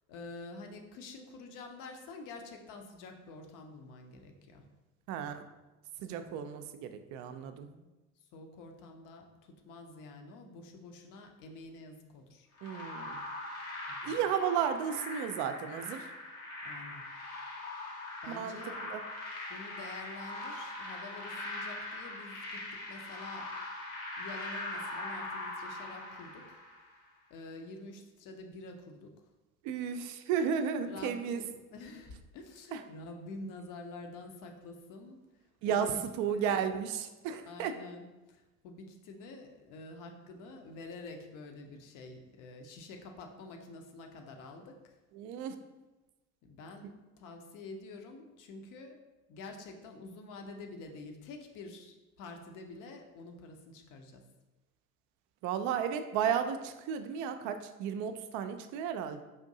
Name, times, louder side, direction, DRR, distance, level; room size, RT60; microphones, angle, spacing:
voice 1, 0.1-4.6 5.2-5.4 6.1-6.3 7.3-7.9 8.3-12.5 13.9-14.2 16.6-17.0 18.2-18.8 19.5-23.5 24.2-26.6 27.3-29.1 30.8-35.2 35.6-36.0 36.3-36.5 37.4-44.8 46.4-46.9 47.2-49.0 49.3-54.2, left 3 dB, 50° left, 4 dB, 0.7 m, -48 dB
voice 2, 5.1-5.4 6.0-7.7 12.6-13.2 14.0-16.0 18.3-18.6 18.8-19.0 29.6-31.4 32.7-32.8 35.6-35.9 36.2-37.7 45.2-45.5 55.4-59.2, right 8 dB, 45° right, 8 dB, 0.4 m, -33 dB
sound 1, 12.6-26.9, left 2 dB, 80° left, 1.0 m, -41 dB
4.9 x 2.5 x 2.7 m, 1.1 s
figure-of-eight pair, 60°, 42 cm